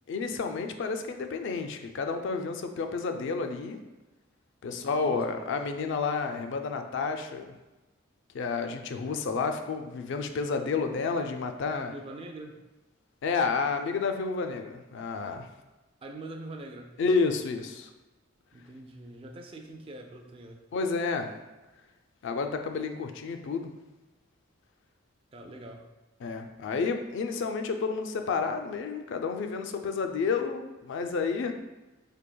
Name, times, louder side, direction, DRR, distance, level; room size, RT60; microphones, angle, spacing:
voice 1, 0.1-3.8 4.6-7.5 8.3-11.9 13.2-15.5 17.0-17.9 20.7-21.3 22.2-23.7 26.2-31.5, left 4 dB, 60° left, 6 dB, 0.4 m, -30 dB
voice 2, 4.7-5.5 11.7-12.6 16.0-16.9 18.5-20.6 25.3-25.9, right 2 dB, 25° right, 3 dB, 0.3 m, -44 dB
4.5 x 2.7 x 2.2 m, 1.1 s
head